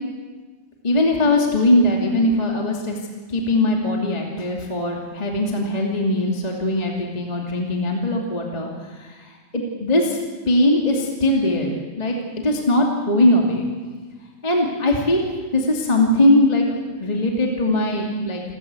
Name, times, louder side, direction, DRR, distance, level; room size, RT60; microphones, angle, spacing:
voice 1, 0.8-3.0 3.3-10.2 10.5-12.2 12.4-13.6 14.4-15.2 15.5-18.4, left 1 dB, 15° left, -1 dB, 2.3 m, -20 dB
28.5 x 13.5 x 8.2 m, 1.4 s
omnidirectional pair, 3.4 m